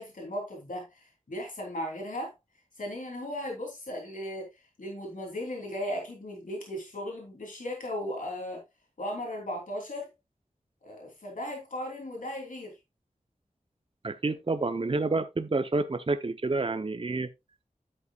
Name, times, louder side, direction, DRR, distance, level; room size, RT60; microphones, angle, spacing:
voice 1, 0.0-2.3 2.8-8.6 9.0-10.1 10.8-12.8, left 1 dB, 75° left, 3.3 m, -36 dB
voice 2, 14.0-17.3, right 3 dB, 40° right, 0.7 m, -29 dB
10.0 x 8.1 x 2.4 m
wide cardioid pair, 60°, 14 cm